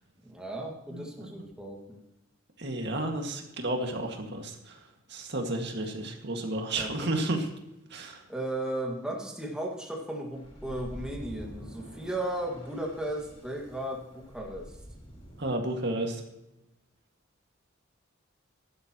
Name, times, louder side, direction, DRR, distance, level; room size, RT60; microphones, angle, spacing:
voice 1, 0.3-2.0 6.7-7.1 8.3-14.8, right 1 dB, 5° right, -1 dB, 1.9 m, -35 dB
voice 2, 2.6-4.8 5.1-7.5 7.9-8.2 15.4-16.2, right 1 dB, 60° right, 2 dB, 1.9 m, -32 dB
sound 1, 10.3-15.5, equal, 30° left, 4.5 m, -47 dB
15.0 x 12.0 x 3.0 m, 0.89 s
head